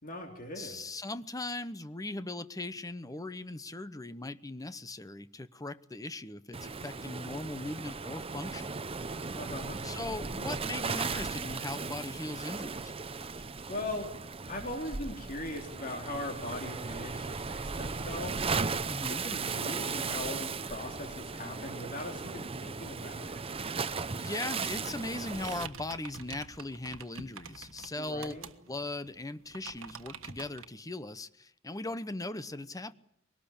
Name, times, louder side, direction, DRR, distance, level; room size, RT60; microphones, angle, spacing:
voice 1, 0.0-0.8 9.3-9.8 13.4-14.1 14.5-18.6 19.1-23.4 28.0-28.5, left 1 dB, 45° left, 3.2 m, -40 dB
voice 2, 0.6-8.8 9.8-12.9 18.8-19.2 24.2-28.3 28.7-32.9, left 2 dB, 15° left, 0.9 m, -39 dB
Waves surf, 6.5-25.7, right 4 dB, 30° right, 0.8 m, -36 dB
sound 1, 25.3-30.7, right 5 dB, 75° right, 1.5 m, -47 dB
22.5 x 18.5 x 8.6 m
head